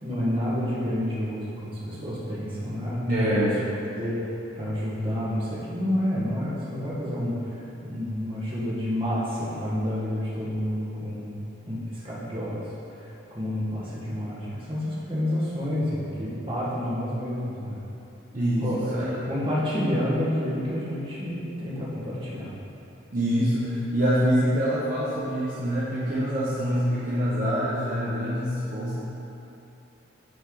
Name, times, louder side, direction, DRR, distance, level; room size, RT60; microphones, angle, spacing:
voice 1, 0.0-3.3 4.0-11.4 11.7-17.8 18.6-22.5, left 1 dB, 25° right, -8 dB, 1.5 m, -29 dB
voice 2, 3.1-3.7 18.3-18.7 19.0-19.1 23.1-29.0, equal, 45° right, -9 dB, 0.9 m, -25 dB
9.1 x 4.3 x 3.9 m, 2.9 s
head